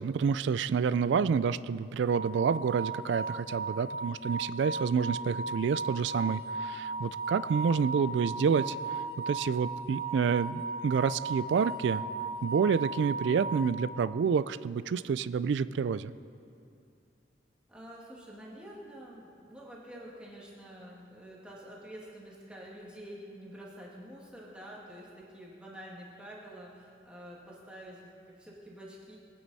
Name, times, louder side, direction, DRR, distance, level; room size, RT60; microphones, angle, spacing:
voice 1, 0.0-9.0 9.3-12.0 12.4-16.1, right 6 dB, 75° right, 16 dB, 0.3 m, -28 dB
sound 1, 2.1-14.3, right 3 dB, 55° right, 1.1 m, -36 dB
voice 2, 17.7-29.2, equal, 5° right, -5 dB, 2.0 m, -48 dB
22.5 x 9.4 x 4.2 m, 2.5 s
head